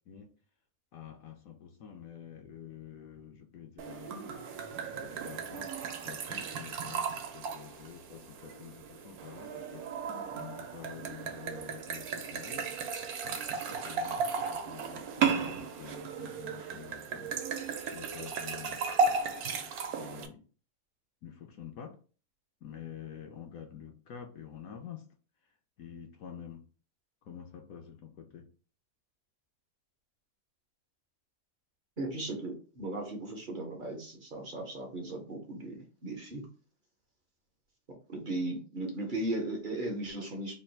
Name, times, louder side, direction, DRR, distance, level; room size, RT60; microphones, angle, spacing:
voice 1, 0.9-4.2 4.9-5.7 6.0-9.9 10.3-12.7 13.2-17.4 17.7-18.8 20.0-20.4 21.2-22.0 22.6-25.0 25.8-26.6 27.2-28.5, left 8 dB, 70° left, 4 dB, 0.9 m, -48 dB
sound 1, 3.8-20.3, right 5 dB, 70° right, 1.1 m, -35 dB
voice 2, 32.0-36.5 38.1-40.5, right 2 dB, 45° right, 1 dB, 0.6 m, -37 dB
3.3 x 2.4 x 4.3 m, 0.39 s
omnidirectional pair, 1.7 m